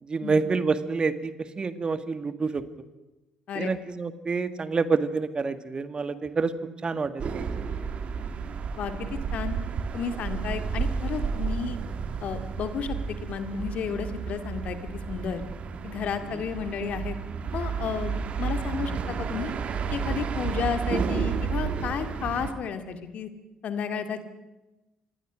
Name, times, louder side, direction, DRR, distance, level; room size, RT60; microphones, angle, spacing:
voice 1, 0.0-2.6 3.5-6.5 6.8-7.5 16.3-16.4, right 4 dB, 35° right, 12 dB, 1.8 m, -28 dB
sound 1, 7.2-22.5, right 6 dB, 50° right, 2.4 m, -31 dB
voice 2, 8.8-9.6 9.9-11.8 12.2-15.4 15.8-17.2 17.5-19.5 19.9-23.3 23.6-24.2, left 6 dB, 60° left, 8 dB, 2.3 m, -32 dB
27.0 x 20.5 x 6.3 m, 1.0 s
hypercardioid pair, 50°, 3 cm